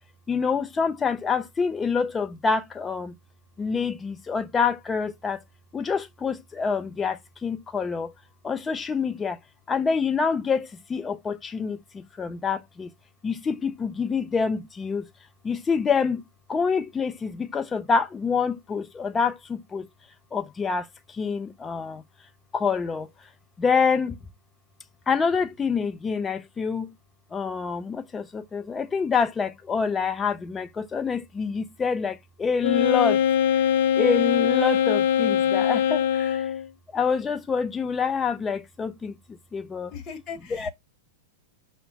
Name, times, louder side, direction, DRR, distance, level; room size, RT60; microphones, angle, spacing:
voice 1, 0.3-3.1 3.6-5.4 5.7-8.1 8.4-9.4 9.7-12.9 13.2-15.1 15.4-16.2 16.5-19.9 20.3-22.0 22.5-23.1 23.6-24.2 25.1-26.9 27.3-33.2 34.0-36.5 36.9-39.2 39.5-39.9 40.6-40.7, left 5 dB, 15° left, 0.6 m, -26 dB
Wind instrument woodwind instrument, 32.6-36.7, left 9 dB, 65° left, 0.4 m, -22 dB
voice 2, 39.9-40.7, left 6 dB, 35° left, 1.2 m, -38 dB
5.6 x 2.2 x 4.1 m
hypercardioid pair, 115°, 0 cm